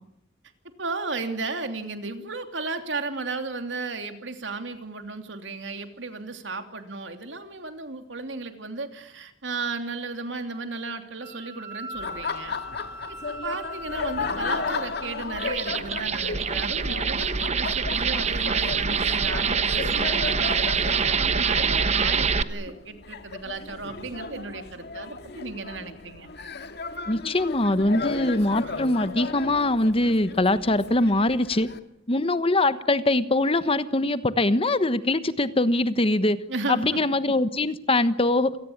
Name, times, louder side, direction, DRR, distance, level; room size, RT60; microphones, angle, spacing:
voice 1, 0.8-12.6 13.1-26.3 28.6-28.8 36.5-37.0, right 3 dB, 85° right, 7 dB, 3.0 m, -34 dB
Wind instrument woodwind instrument, 11.2-15.2, left 1 dB, 15° right, 4.2 m, -40 dB
Laughter, 11.9-31.8, left 4 dB, 65° left, 2.1 m, -35 dB
sound 1, 15.3-22.4, right 5 dB, 40° right, 1.1 m, -25 dB
voice 2, 27.1-31.7 32.1-36.4 36.7-38.6, left 2 dB, 30° left, 13 dB, 1.2 m, -22 dB
28.0 x 19.0 x 8.7 m, 0.80 s
head